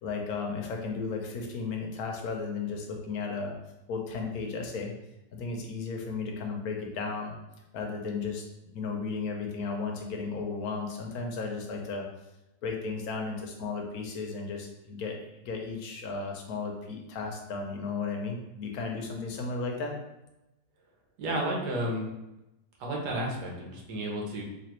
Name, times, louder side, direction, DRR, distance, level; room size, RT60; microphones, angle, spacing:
voice 1, 0.0-3.5 3.9-4.9 5.3-7.3 7.7-12.1 12.6-20.0, left 4 dB, 70° left, 2 dB, 1.1 m, -34 dB
voice 2, 21.2-22.1 22.8-24.4, right 1 dB, 90° right, -1 dB, 1.5 m, -32 dB
4.1 x 2.7 x 3.0 m, 0.94 s
omnidirectional pair, 1.7 m